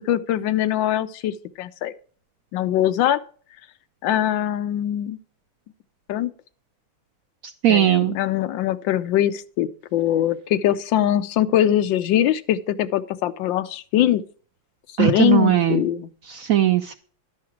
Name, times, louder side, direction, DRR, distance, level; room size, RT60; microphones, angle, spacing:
voice 1, 0.0-1.9 2.5-3.2 4.0-5.2 6.1-6.3 7.7-14.2 15.0-16.1, left 12 dB, 75° left, 11 dB, 1.4 m, -22 dB
voice 2, 7.6-8.2 15.0-15.8 16.3-17.0, right 12 dB, 85° right, 8 dB, 0.7 m, -18 dB
11.5 x 5.9 x 6.0 m, 0.43 s
omnidirectional pair, 2.1 m